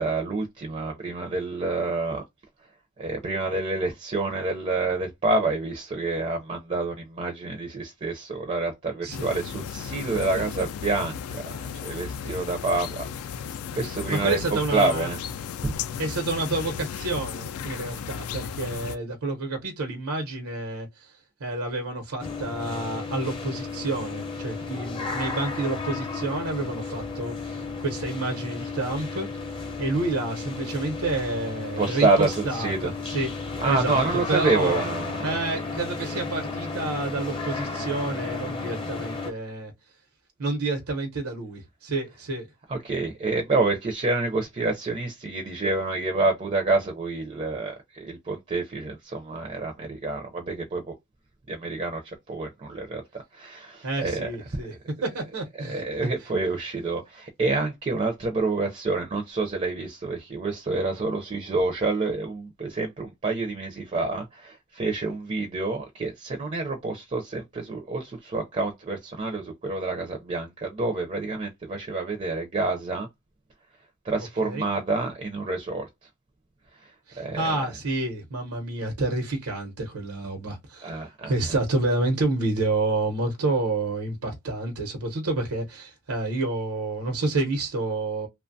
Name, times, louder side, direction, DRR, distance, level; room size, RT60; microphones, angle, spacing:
voice 1, 0.0-2.2 3.0-15.2 15.6-15.7 31.8-32.9 33.6-35.4 42.7-50.9 51.5-54.6 55.6-73.1 74.0-75.9 76.8-77.5 80.8-81.3, right 3 dB, 30° right, 0.4 m, -28 dB
voice 2, 9.0-9.3 10.3-10.6 14.1-15.1 16.0-29.3 29.8-33.3 33.7-34.0 34.3-34.8 35.2-39.7 40.4-42.5 53.8-54.7 55.0-55.8 74.4-74.6 77.1-88.3, right 2 dB, 90° right, 0.8 m, -29 dB
sound 1, 9.1-19.0, left 7 dB, 80° left, 0.3 m, -35 dB
sound 2, 22.2-39.3, left 4 dB, 25° left, 0.5 m, -33 dB
2.9 x 2.1 x 2.6 m
head